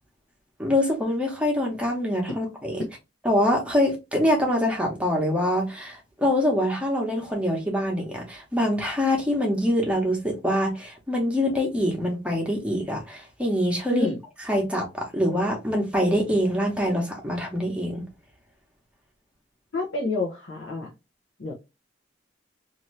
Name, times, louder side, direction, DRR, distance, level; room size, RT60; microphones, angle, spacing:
voice 1, 0.6-2.8 3.2-14.1 14.5-18.0, left 1 dB, 5° right, 0.9 m, -24 dB
voice 2, 13.9-14.2 19.7-20.9 21.4-21.5, left 2 dB, 75° left, 0.8 m, -28 dB
2.8 x 2.6 x 3.1 m
head